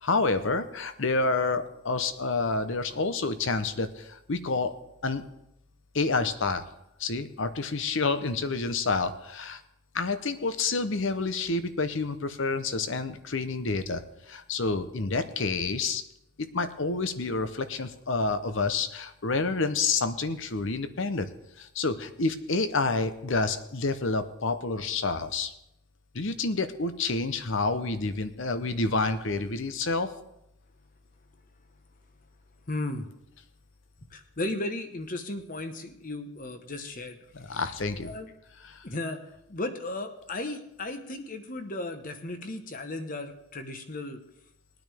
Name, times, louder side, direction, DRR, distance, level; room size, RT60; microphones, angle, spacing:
voice 1, 0.0-4.7 5.0-5.2 5.9-6.7 7.0-9.6 9.9-16.0 16.4-21.3 21.6-25.5 26.1-30.1 37.3-38.1 38.6-38.8, left 3 dB, 60° left, 11 dB, 0.8 m, -28 dB
voice 2, 32.7-33.1 34.1-37.2 37.5-37.6 38.0-38.3 38.8-44.2, left 2 dB, 40° left, 7 dB, 1.1 m, -35 dB
20.0 x 9.5 x 3.5 m, 0.85 s
head